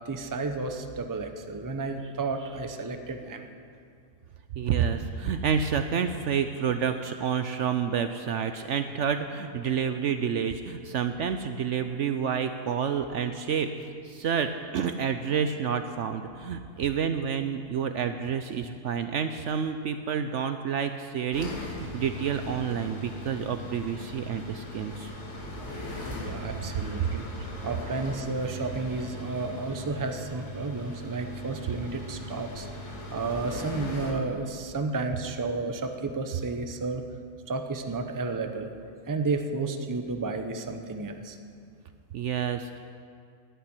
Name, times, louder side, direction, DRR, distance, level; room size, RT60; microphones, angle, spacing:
voice 1, 0.1-3.5 8.5-8.6 26.2-27.3 27.6-32.7 33.1-37.0 37.5-38.7 39.1-41.4, right 3 dB, 25° right, 6 dB, 0.4 m, -32 dB
voice 2, 4.6-25.1 27.4-27.5 42.1-42.8, right 7 dB, 65° right, 8 dB, 0.7 m, -29 dB
sound 1, 21.3-34.1, left 1 dB, 45° left, 2.8 m, -39 dB
11.0 x 8.7 x 9.6 m, 2.3 s
omnidirectional pair, 1.7 m